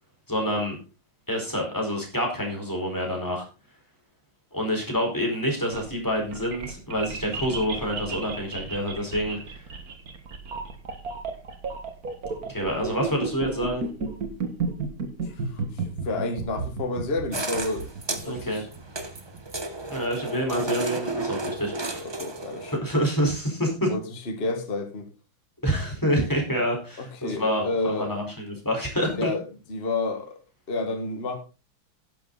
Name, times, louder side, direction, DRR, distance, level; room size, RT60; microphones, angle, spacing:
voice 1, 0.3-0.8 1.3-3.5 4.5-9.6 12.4-13.8 18.2-18.6 19.9-22.0 22.7-23.9 25.6-29.3, equal, 10° left, 0 dB, 4.4 m, -27 dB
sound 1, 5.5-19.6, right 4 dB, 45° right, 2.0 m, -33 dB
voice 2, 15.2-18.7 22.0-22.8 23.9-25.1 27.0-28.1 29.1-29.4 29.7-30.4 30.7-31.4, left 3 dB, 30° left, 5 dB, 1.8 m, -30 dB
sound 2, 17.3-22.8, right 2 dB, 25° right, 0.6 m, -33 dB
11.5 x 10.5 x 4.0 m, 0.32 s
omnidirectional pair, 2.3 m